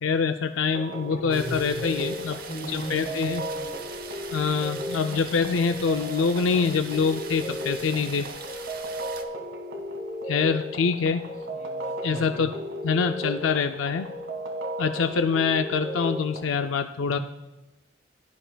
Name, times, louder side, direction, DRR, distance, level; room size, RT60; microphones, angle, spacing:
voice 1, 0.0-2.4 2.7-3.4 4.3-8.3 10.2-11.2 12.0-12.5 12.8-14.1 14.8-17.2, left 5 dB, 85° left, 7 dB, 0.4 m, -25 dB
sound 1, 0.7-16.4, equal, 80° right, 1.8 m, -35 dB
voice 2, 1.1-2.0 2.5-3.8 11.5-12.5 17.0-17.2, equal, 35° left, 1 dB, 2.2 m, -37 dB
sound 2, 1.3-9.2, right 6 dB, 50° right, 0.9 m, -42 dB
17.0 x 11.5 x 2.3 m, 1.1 s
head